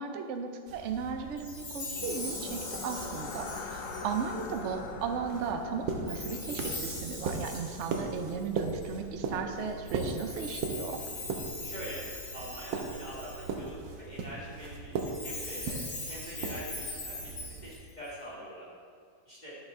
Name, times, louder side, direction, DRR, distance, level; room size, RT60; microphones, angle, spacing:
voice 1, 0.0-11.0, right 5 dB, 60° right, 5 dB, 0.8 m, -36 dB
sound 1, 0.7-17.8, right 4 dB, 85° right, 1.6 m, -39 dB
Chime, 1.4-4.7 6.1-8.9 9.9-13.7 14.9-18.1, left 2 dB, 90° left, 2.8 m, -41 dB
sound 2, 1.9-10.0, left 5 dB, 75° left, 1.3 m, -44 dB
voice 2, 11.6-12.0 12.3-15.8 16.1-18.7 19.3-19.6, equal, 25° left, -8 dB, 2.1 m, -44 dB
10.5 x 7.3 x 3.7 m, 2.1 s
omnidirectional pair, 2.0 m